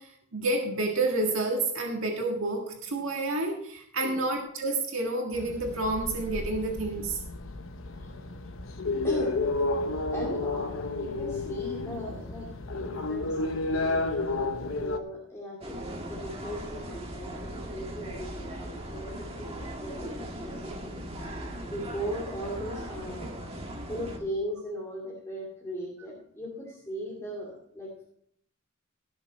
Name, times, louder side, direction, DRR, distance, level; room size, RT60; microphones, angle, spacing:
voice 1, 0.0-7.2, right 2 dB, 75° right, 1 dB, 1.8 m, -29 dB
sound 1, 5.3-15.0, left 2 dB, 65° left, 0.9 m, -31 dB
voice 2, 10.1-12.5 12.7-13.5 13.8-20.7 21.1-28.0, equal, 15° left, -4 dB, 2.4 m, -38 dB
sound 2, 15.6-24.2, right 1 dB, 30° right, 1.7 m, -39 dB
17.0 x 6.6 x 4.3 m, 0.67 s
head